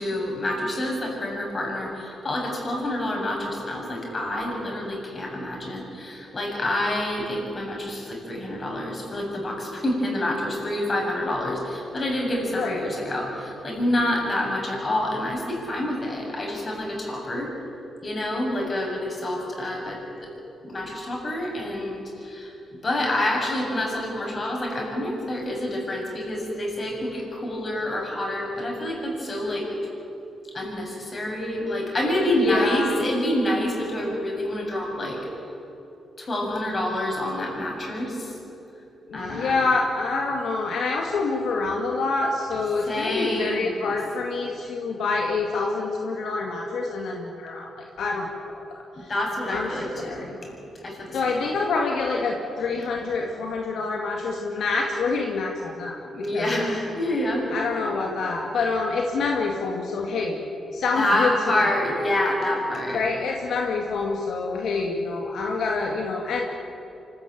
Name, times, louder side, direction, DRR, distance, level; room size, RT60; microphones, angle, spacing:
voice 1, 0.0-17.5 18.0-20.3 20.6-22.5 22.8-29.7 30.5-35.2 36.2-38.3 39.1-39.7 42.9-44.0 49.0-50.5 50.8-51.4 56.1-57.5 61.0-63.0, left 1 dB, 35° left, 0 dB, 7.2 m, -27 dB
voice 2, 12.5-12.8 32.4-33.1 39.1-49.1 49.5-50.4 51.1-56.0 56.3-56.6 57.5-60.4 60.7-61.6 62.9-66.5, left 4 dB, 75° left, 1 dB, 2.1 m, -27 dB
25.0 x 15.0 x 9.3 m, 3.0 s
cardioid pair, 80°, 0 cm